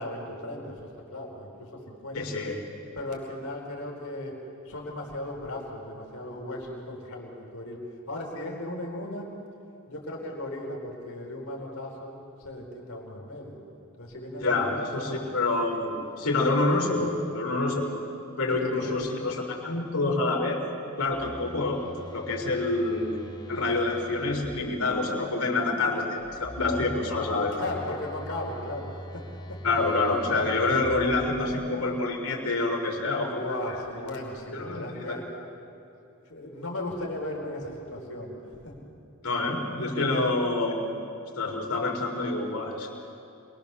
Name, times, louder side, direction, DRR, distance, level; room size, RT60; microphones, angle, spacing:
voice 1, 0.0-2.2 2.9-4.4 4.6-7.8 8.1-9.3 9.9-13.6 14.0-14.9 18.5-19.0 27.5-29.2 29.5-29.6 33.3-35.3 36.3-38.8, left 1 dB, 70° left, -1 dB, 4.6 m, -36 dB
voice 2, 2.1-2.6 14.4-18.0 18.4-20.6 21.0-21.8 22.1-23.1 23.5-27.6 29.6-33.4 34.5-35.1 39.2-41.0 41.4-42.9, left 2 dB, 85° left, 0 dB, 4.6 m, -27 dB
Telephone, 21.0-25.0 26.2-31.9, equal, 20° left, 1.0 m, -43 dB
27.5 x 22.5 x 7.0 m, 2.7 s
head